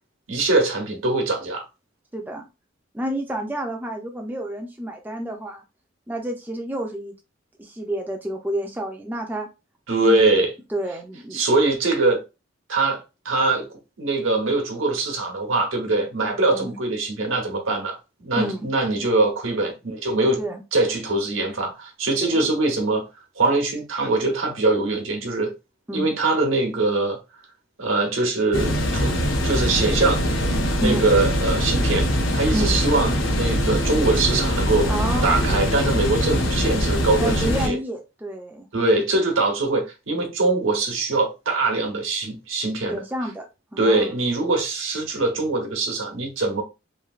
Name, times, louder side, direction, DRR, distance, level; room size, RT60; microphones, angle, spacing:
voice 1, 0.3-1.6 9.9-10.5 11.3-12.2 12.7-20.4 20.7-23.0 23.4-25.5 25.9-27.2 27.8-30.2 30.8-34.9 35.2-37.8 38.7-43.0 43.8-46.6, right 2 dB, 85° right, 1.0 m, -22 dB
voice 2, 2.1-2.4 2.9-5.6 6.1-7.1 7.6-9.5 10.0-10.3 10.7-11.4 16.5-16.8 18.4-18.7 20.4-20.6 22.2-22.5 25.9-26.1 30.8-31.1 32.5-32.8 34.9-35.6 37.2-38.7 42.9-43.5 43.7-44.1, right 1 dB, 10° right, 0.4 m, -29 dB
sound 1, 28.5-37.7, equal, 80° left, 0.7 m, -22 dB
3.1 x 2.7 x 2.3 m
head